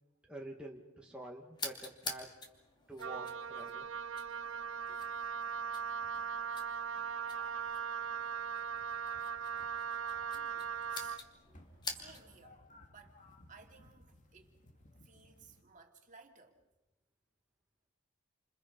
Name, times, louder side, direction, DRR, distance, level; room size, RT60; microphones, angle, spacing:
voice 1, 0.3-2.3 2.9-3.9, right 2 dB, 5° right, 1.8 m, -47 dB
sound 1, 1.5-12.4, left 3 dB, 20° left, 2.7 m, -49 dB
Wind instrument woodwind instrument, 3.0-11.3, right 7 dB, 65° right, 0.8 m, -39 dB
sound 2, 4.4-15.6, left 1 dB, 35° left, 2.3 m, -61 dB
voice 2, 10.2-11.2 11.9-12.6 12.9-13.2 13.5-14.6 15.0-16.7, right 5 dB, 35° right, 2.7 m, -59 dB
29.0 x 27.5 x 5.3 m
head